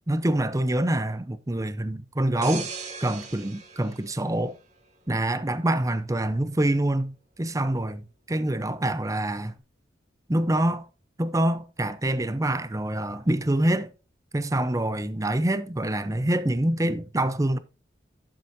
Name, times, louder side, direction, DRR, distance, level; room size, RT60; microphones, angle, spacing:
voice 1, 0.1-2.7 3.0-4.6 5.1-9.5 10.3-10.9 11.2-13.9 14.3-17.6, right 1 dB, 20° right, 0.6 m, -26 dB
sound 1, 2.4-5.1 5.6-5.8, right 5 dB, 40° right, 1.8 m, -39 dB
11.5 x 7.3 x 2.7 m
head